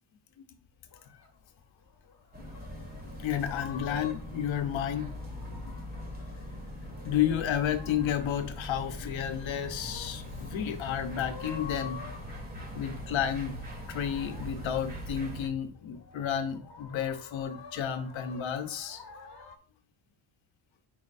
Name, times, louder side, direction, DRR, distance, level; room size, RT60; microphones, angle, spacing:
sound 1, 0.9-19.6, left 6 dB, 55° left, 1.4 m, -49 dB
sound 2, 2.3-15.5, equal, 20° right, 1.8 m, -41 dB
voice 1, 2.4-2.8 3.1-5.4 7.0-12.0 12.7-13.6 13.9-19.0, left 9 dB, 90° left, 1.0 m, -32 dB
8.7 x 5.1 x 2.6 m
wide cardioid pair, 145°, 45 cm